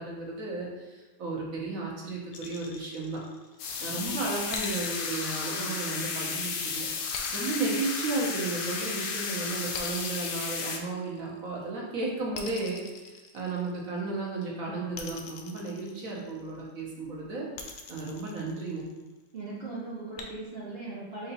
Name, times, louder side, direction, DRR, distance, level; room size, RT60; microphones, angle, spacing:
voice 1, 0.0-3.2 3.8-6.9 7.3-12.8 13.3-18.9, right 3 dB, 55° right, -4 dB, 1.1 m, -34 dB
sound 1, 2.3-3.7 4.5-6.4 7.1-8.9 9.7-11.4 12.3-14.0 14.9-16.5 17.6-19.1 20.2-20.3, left 5 dB, 70° left, 1.0 m, -43 dB
sound 2, 3.6-10.8, left 5 dB, 85° left, 1.3 m, -33 dB
voice 2, 19.3-21.3, right 3 dB, 85° right, -6 dB, 0.5 m, -39 dB
4.4 x 2.7 x 4.0 m, 1.2 s
omnidirectional pair, 2.0 m